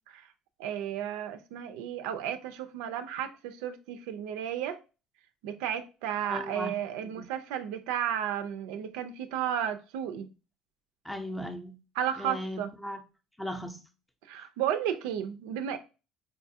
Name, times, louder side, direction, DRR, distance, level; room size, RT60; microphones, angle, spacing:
voice 1, 0.6-4.8 5.4-10.3 12.0-12.7 14.3-15.8, right 9 dB, 90° right, 0.3 m, -33 dB
voice 2, 6.2-6.8 7.2-7.3 11.0-11.8 12.2-13.0 13.4-13.8, left 1 dB, 5° left, 0.5 m, -37 dB
4.6 x 2.4 x 2.6 m
cardioid pair, 110°, 0 cm